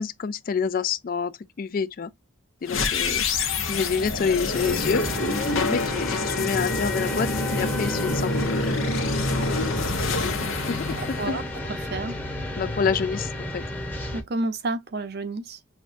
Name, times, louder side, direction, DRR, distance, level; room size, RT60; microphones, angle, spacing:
voice 1, 0.0-2.1 2.6-5.0 5.5-7.3 7.6-8.8 9.3-10.4 10.7-11.4 12.6-13.6, left 5 dB, 45° left, 0.3 m, -28 dB
sound 1, 2.6-11.9, left 3 dB, 85° left, 1.0 m, -27 dB
sound 2, 4.5-14.2, left 1 dB, 10° left, 0.8 m, -32 dB
voice 2, 11.0-11.4 11.7-12.1 14.1-15.6, right 2 dB, 50° right, 0.7 m, -30 dB
5.8 x 2.3 x 2.6 m
head